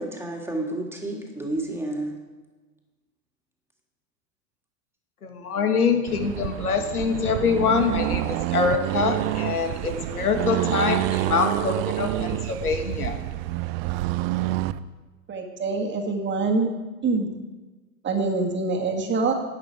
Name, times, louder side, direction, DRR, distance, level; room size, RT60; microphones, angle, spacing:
voice 1, 0.0-2.1, right 1 dB, 5° right, 1 dB, 2.3 m, -30 dB
voice 2, 5.2-13.2, left 5 dB, 90° left, 5 dB, 1.6 m, -25 dB
Accelerating revving vroom, 6.1-14.8, right 16 dB, 45° right, 0.5 m, -27 dB
voice 3, 15.3-16.7 17.0-17.3 18.0-19.3, right 3 dB, 25° right, 3 dB, 1.8 m, -25 dB
11.5 x 8.7 x 4.8 m, 1.2 s
hypercardioid pair, 95°, 44 cm